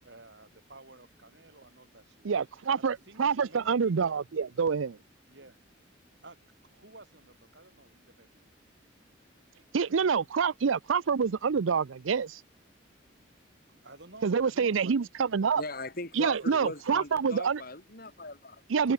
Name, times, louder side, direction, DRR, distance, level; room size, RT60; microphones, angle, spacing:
voice 1, 0.0-2.3 2.7-4.4 5.3-5.6 6.2-6.4 6.6-8.5 13.7-14.9, right 2 dB, 60° right, 4.7 m, -53 dB
voice 2, 2.2-5.0 9.7-12.4 14.2-15.0 15.3-15.6 16.2-17.6 18.7-18.9, right 6 dB, 80° right, 0.5 m, -27 dB
voice 3, 15.6-18.9, left 2 dB, 45° left, 5.4 m, -40 dB
head